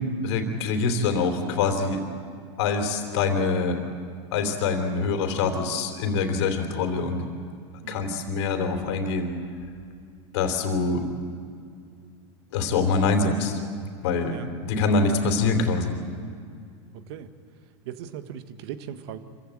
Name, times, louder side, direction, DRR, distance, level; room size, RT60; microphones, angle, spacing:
voice 1, 0.2-2.0 2.6-3.8 4.3-7.3 7.9-9.3 10.3-11.1 12.5-13.6 14.0-15.9, left 4 dB, 70° left, 5 dB, 3.2 m, -25 dB
voice 2, 17.8-19.2, right 10 dB, 65° right, 10 dB, 1.5 m, -38 dB
25.5 x 15.5 x 8.9 m, 2.2 s
hypercardioid pair, 115°, 15 cm